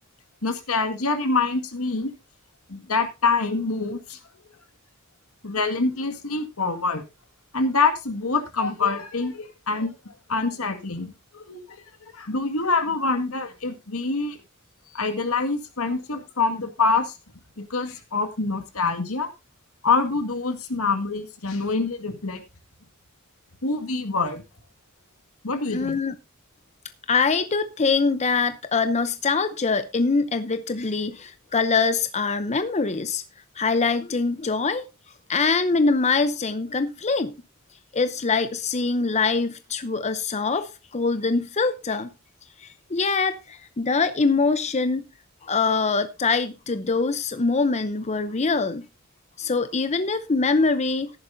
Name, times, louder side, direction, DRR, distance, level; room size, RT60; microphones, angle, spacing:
voice 1, 0.4-2.1 2.7-4.2 5.4-7.0 7.5-9.9 10.3-11.6 12.0-14.4 14.9-17.1 17.6-19.3 19.8-22.4 23.6-24.4 25.4-26.0, left 4 dB, 80° left, 1.9 m, -25 dB
voice 2, 25.7-26.1 27.1-33.2 33.6-34.8 35.3-37.3 37.9-42.1 42.6-45.0 45.4-48.9 49.4-51.1, left 4 dB, 30° left, 0.7 m, -23 dB
14.0 x 11.0 x 2.7 m
head